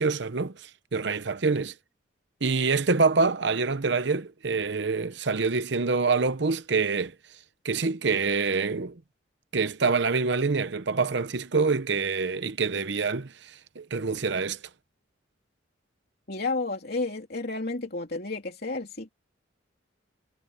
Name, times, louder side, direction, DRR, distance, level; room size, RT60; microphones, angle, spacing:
voice 1, 0.0-1.7 2.4-7.1 7.6-9.0 9.5-14.6, right 4 dB, 60° right, 0.8 m, -26 dB
voice 2, 16.3-19.1, left 3 dB, 55° left, 3.3 m, -31 dB
head